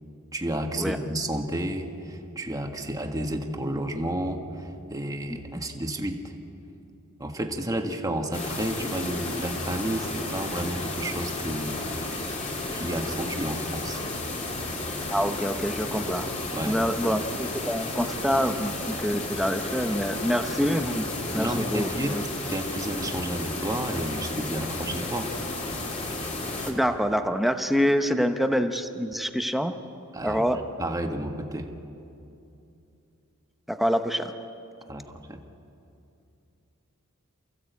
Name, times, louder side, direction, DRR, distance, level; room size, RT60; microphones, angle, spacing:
voice 1, 0.3-6.2 7.2-12.1 12.7-14.0 16.5-16.7 21.3-22.1 22.5-25.3 30.1-30.4 30.8-31.7 34.9-35.0 35.3-35.4, right 1 dB, 15° right, 3 dB, 1.6 m, -31 dB
sound 1, 8.3-26.7, left 2 dB, 35° left, 2.8 m, -33 dB
voice 2, 15.1-16.3 16.6-22.2 26.6-29.7 30.2-30.6 33.7-34.3, equal, ahead, 7 dB, 0.8 m, -26 dB
29.0 x 15.5 x 8.3 m, 2.8 s
head